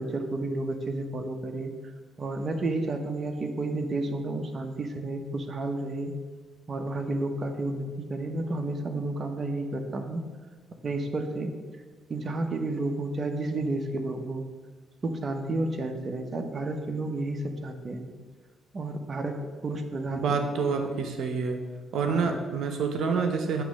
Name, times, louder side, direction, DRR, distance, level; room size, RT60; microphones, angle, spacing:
voice 1, 0.0-1.7 2.2-6.1 6.7-10.2 10.8-11.5 12.1-14.5 15.0-18.1 18.7-19.4 19.6-21.0 22.0-22.4, right 2 dB, 40° right, 5 dB, 0.8 m, -31 dB
voice 2, 20.1-21.6 21.9-23.6, right 5 dB, 75° right, 5 dB, 0.8 m, -27 dB
9.1 x 3.1 x 6.3 m, 1.4 s
cardioid pair, 90°, 0 cm